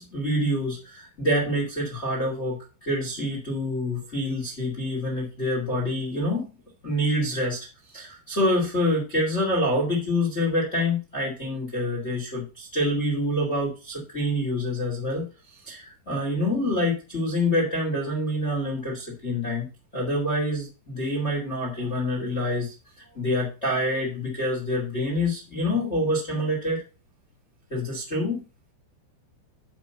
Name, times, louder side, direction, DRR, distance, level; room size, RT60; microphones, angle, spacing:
voice 1, 0.0-6.5 6.8-7.6 7.9-15.3 15.7-19.6 19.9-22.7 23.1-26.8 27.7-28.4, left 1 dB, 20° left, -3 dB, 2.1 m, -26 dB
11.0 x 3.8 x 5.7 m, 0.32 s
omnidirectional pair, 5.6 m